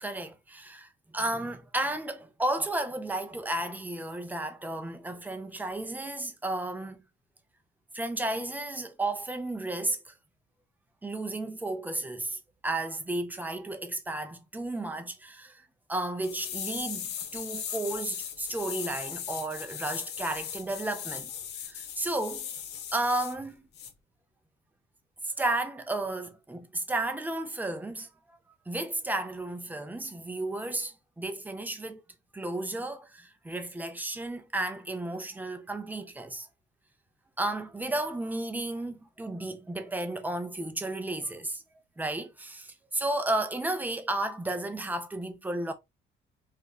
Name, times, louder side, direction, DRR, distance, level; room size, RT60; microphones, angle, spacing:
voice 1, 0.0-7.0 7.9-10.1 11.0-15.6 15.9-21.3 21.6-22.5 22.9-23.6 25.2-28.1 28.7-32.0 32.3-36.5 37.4-41.6 42.0-45.7, right 2 dB, 10° right, 0.5 m, -33 dB
sound 1, 16.2-23.3 23.7-23.9, left 8 dB, 65° left, 0.6 m, -38 dB
3.0 x 2.4 x 2.3 m
cardioid pair, 120°, 18 cm